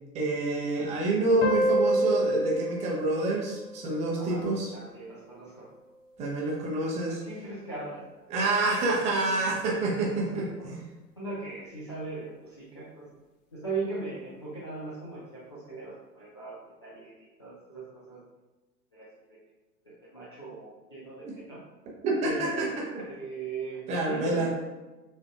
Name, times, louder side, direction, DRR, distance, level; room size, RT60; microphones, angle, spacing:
voice 1, 0.1-4.7 6.2-7.2 8.3-10.8 21.2-21.4 22.0-23.0 23.9-24.5, right 2 dB, 15° right, -2 dB, 0.6 m, -27 dB
sound 1, 1.4-4.6, right 1 dB, 50° left, 0.8 m, -29 dB
voice 2, 4.7-5.6 7.1-8.0 8.3-8.5 10.2-10.7 11.2-13.0 13.5-16.5 16.8-18.2 18.9-19.4 19.9-21.6 22.2-22.7 23.1-24.5, right 3 dB, 20° left, -9 dB, 0.3 m, -39 dB
6.5 x 3.4 x 2.3 m, 1.2 s
figure-of-eight pair, 105°, 50 cm